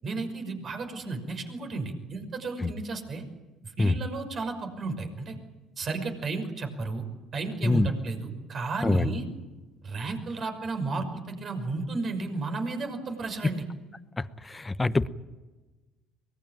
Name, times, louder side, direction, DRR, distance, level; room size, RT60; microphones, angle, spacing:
voice 1, 0.0-3.2 3.8-5.4 5.8-7.0 7.3-9.2 9.8-13.6, right 3 dB, 45° right, 6 dB, 5.9 m, -33 dB
voice 2, 14.2-15.1, left 2 dB, 15° left, 14 dB, 1.0 m, -25 dB
23.5 x 20.5 x 9.2 m, 1.2 s
supercardioid pair, 95°, 0 cm